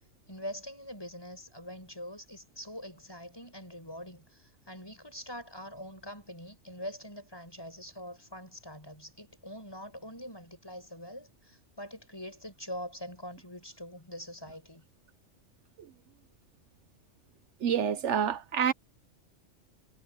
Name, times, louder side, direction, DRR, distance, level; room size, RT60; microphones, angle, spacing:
voice 1, 0.3-14.8, equal, 20° left, 7.8 m, -44 dB
voice 2, 17.6-18.7, right 8 dB, 75° right, 1.1 m, -27 dB
omnidirectional pair, 1.2 m